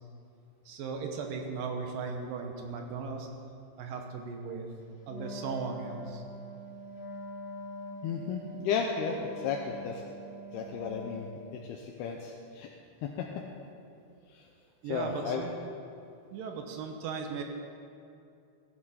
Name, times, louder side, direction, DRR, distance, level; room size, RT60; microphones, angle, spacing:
voice 1, 0.7-3.3 3.8-4.7 5.1-6.2 14.8-15.5 16.3-17.4, right 5 dB, 70° right, 4 dB, 2.4 m, -37 dB
Wind instrument woodwind instrument, 5.0-11.5, equal, 60° left, 2.4 m, -44 dB
voice 2, 8.0-10.0 10.5-11.3 11.5-12.7 13.0-13.3 14.3-14.4 14.9-15.4, left 6 dB, 80° left, 1 dB, 2.7 m, -34 dB
15.0 x 11.0 x 4.3 m, 2.5 s
omnidirectional pair, 4.7 m